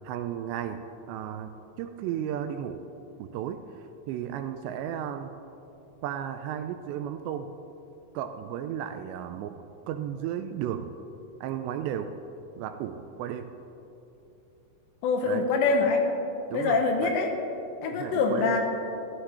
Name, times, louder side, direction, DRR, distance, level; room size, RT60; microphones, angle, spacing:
voice 1, 0.0-0.8 1.1-1.5 1.8-2.8 3.2-5.3 6.0-7.5 8.1-9.6 9.9-10.9 11.4-12.1 12.6-13.6 15.2-15.5 16.5-17.1 17.9-18.6, right 10 dB, 85° right, 8 dB, 2.6 m, -34 dB
voice 2, 15.0-16.1 16.5-17.3 17.8-18.6, left 4 dB, 80° left, 3 dB, 3.1 m, -24 dB
14.5 x 12.5 x 4.3 m, 2.9 s
omnidirectional pair, 5.2 m